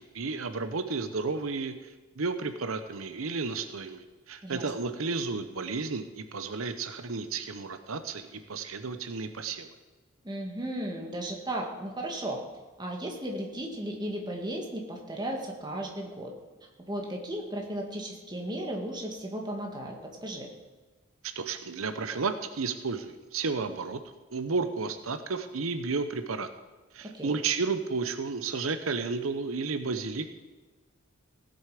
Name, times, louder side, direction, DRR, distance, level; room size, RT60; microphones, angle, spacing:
voice 1, 0.0-9.7 21.2-24.0 24.3-26.5 26.9-30.3, right 4 dB, 90° right, 9 dB, 0.8 m, -32 dB
voice 2, 4.4-4.9 10.2-12.4 12.8-16.3 16.9-20.5 27.0-27.3, right 1 dB, 20° right, 0 dB, 2.0 m, -35 dB
17.0 x 8.0 x 5.1 m, 1.3 s
head